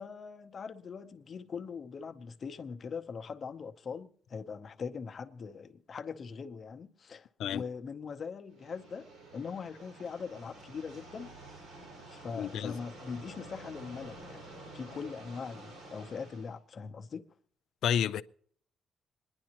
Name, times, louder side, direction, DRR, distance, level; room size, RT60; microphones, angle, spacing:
voice 1, 0.0-11.3 12.1-14.4 14.7-17.2, left 5 dB, 35° left, 0.7 m, -41 dB
sound 1, 8.5-16.6, right 2 dB, 80° right, 4.4 m, -50 dB
voice 2, 12.4-12.8 17.8-18.2, left 9 dB, 75° left, 0.4 m, -30 dB
27.0 x 10.5 x 2.9 m
cardioid pair, 165°, 0 cm